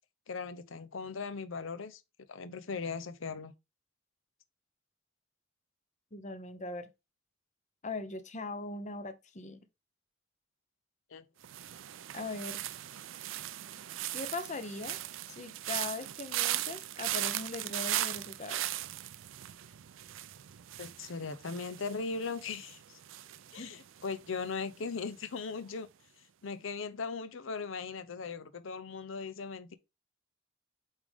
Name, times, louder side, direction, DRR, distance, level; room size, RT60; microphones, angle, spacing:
voice 1, 0.3-2.0 2.3-3.5 11.1-11.2 20.8-22.8 23.5-25.9 26.4-29.7, left 4 dB, 70° left, 0.6 m, -38 dB
voice 2, 6.1-6.9 7.8-9.6 12.1-12.6 14.1-15.0 15.3-18.6 23.6-23.7, left 3 dB, 40° left, 0.9 m, -40 dB
sound 1, 11.4-24.5 24.7-25.2, right 13 dB, 70° right, 0.4 m, -38 dB
8.7 x 3.6 x 3.5 m
head